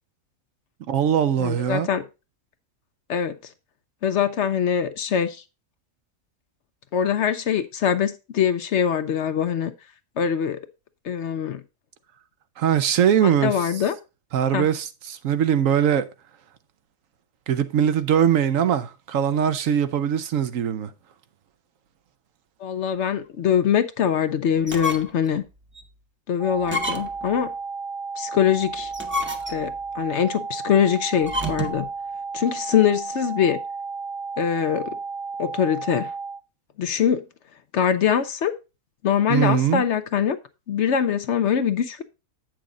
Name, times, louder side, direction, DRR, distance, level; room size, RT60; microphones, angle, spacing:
voice 1, 0.9-1.9 12.6-13.7 14.3-16.1 17.5-20.9 39.3-39.8, right 9 dB, 70° right, 1.1 m, -21 dB
voice 2, 1.4-2.0 3.1-3.3 4.0-5.4 6.9-9.7 10.2-10.6 11.0-11.6 13.2-14.0 14.5-14.7 22.6-25.4 26.3-27.5 28.2-28.9 29.5-31.9 32.3-33.6 34.4-35.0 35.4-36.1 36.8-37.2 37.7-38.5 39.0-40.4 40.7-42.0, left 8 dB, 60° left, 0.9 m, -23 dB
sound 1, 24.6-25.3 25.8-25.9 26.6-27.3 28.8-29.8 31.2-31.9, left 1 dB, 10° right, 0.8 m, -29 dB
sound 2, 26.4-36.4, right 4 dB, 55° right, 0.7 m, -33 dB
8.5 x 6.2 x 3.8 m
omnidirectional pair, 1.4 m